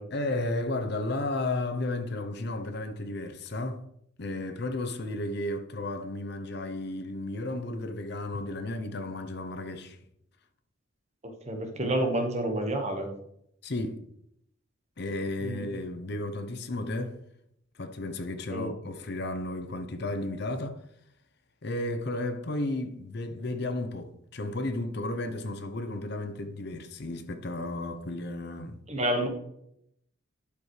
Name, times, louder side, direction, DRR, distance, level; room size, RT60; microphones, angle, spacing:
voice 1, 0.1-3.8 4.2-10.0 13.6-14.0 15.0-17.2 17.8-20.8 21.6-28.8, left 2 dB, 55° left, 0.7 m, -33 dB
voice 2, 11.5-13.1 15.4-15.6 18.5-18.7 28.9-29.3, right 1 dB, 35° right, 1.4 m, -29 dB
11.5 x 5.2 x 3.3 m
head